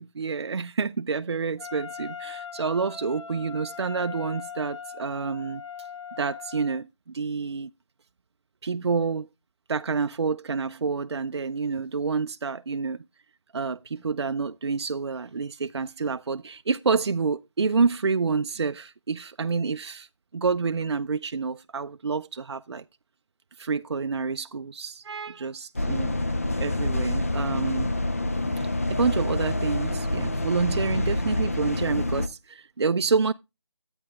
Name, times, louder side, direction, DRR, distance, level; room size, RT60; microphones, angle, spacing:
voice 1, 0.0-5.6 6.2-7.7 8.6-9.3 9.7-13.0 13.5-20.1 20.3-22.8 23.6-26.2 26.6-27.9 28.6-33.3, right 4 dB, 65° right, 0.4 m, -28 dB
Wind instrument woodwind instrument, 1.6-6.8, left 6 dB, 75° left, 1.1 m, -40 dB
sound 1, 25.8-32.3, left 2 dB, 30° left, 0.5 m, -27 dB
11.5 x 8.7 x 2.2 m
figure-of-eight pair, 170°, 15 cm